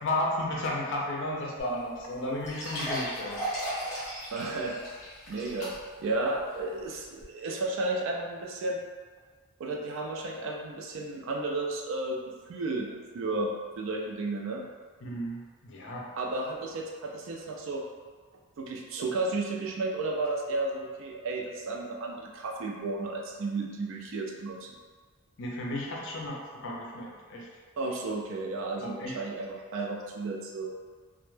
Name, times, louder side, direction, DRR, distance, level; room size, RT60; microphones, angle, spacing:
voice 1, 0.0-3.4 15.0-16.1 25.4-27.5 28.8-29.1, left 1 dB, 55° left, -2 dB, 0.4 m, -33 dB
sound 1, 1.6-1.7 2.0-2.1 2.4-6.1 6.5-6.6 7.2-7.3, equal, 10° left, 0.7 m, -36 dB
voice 2, 4.3-4.8 5.3-8.8 9.6-14.6 16.2-17.8 18.6-24.8 27.8-30.7, right 2 dB, 60° right, 0 dB, 0.3 m, -33 dB
2.1 x 2.0 x 3.0 m, 1.5 s
head